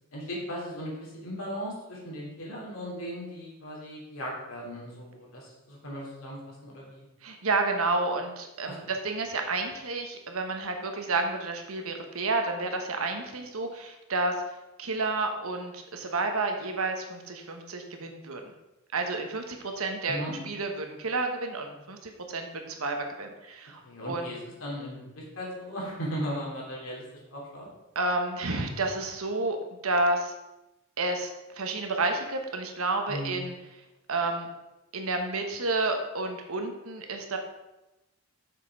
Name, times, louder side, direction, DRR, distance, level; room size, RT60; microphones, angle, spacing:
voice 1, 0.1-7.1 8.6-8.8 20.1-20.3 23.8-27.0 27.3-27.7 33.1-33.4, equal, 70° left, -4 dB, 3.1 m, -37 dB
voice 2, 7.2-14.4 14.8-18.4 18.9-23.8 24.1-24.3 27.9-30.3 31.0-31.3 31.6-33.5 34.1-34.5 34.9-37.4, right 3 dB, 80° right, 4 dB, 1.1 m, -30 dB
6.7 x 6.3 x 4.7 m, 0.99 s
head